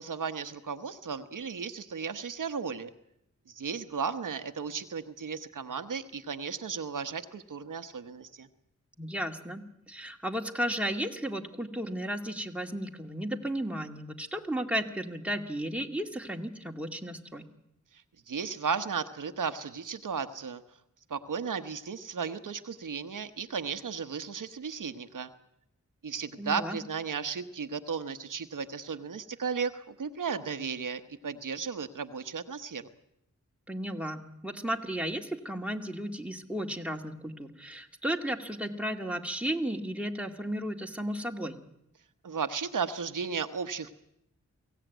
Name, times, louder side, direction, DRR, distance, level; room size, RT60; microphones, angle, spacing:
voice 1, 0.0-2.9 3.5-8.5 18.3-20.6 21.1-25.3 26.0-32.9 42.2-44.0, right 6 dB, 90° right, 8 dB, 1.1 m, -35 dB
voice 2, 9.0-17.4 26.4-26.8 33.7-41.6, equal, 5° right, 3 dB, 2.0 m, -34 dB
23.0 x 16.5 x 9.2 m, 0.79 s
wide cardioid pair, 65°, 31 cm